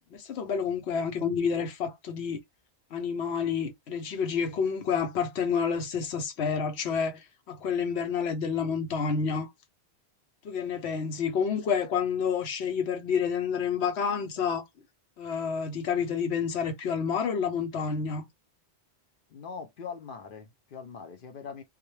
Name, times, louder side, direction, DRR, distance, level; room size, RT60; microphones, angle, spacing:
voice 1, 0.2-2.4 2.9-9.5 10.4-14.6 15.2-18.2, left 6 dB, 80° left, 1.0 m, -29 dB
voice 2, 19.3-21.6, left 6 dB, 60° left, 0.7 m, -41 dB
2.3 x 2.1 x 3.0 m
omnidirectional pair, 1.1 m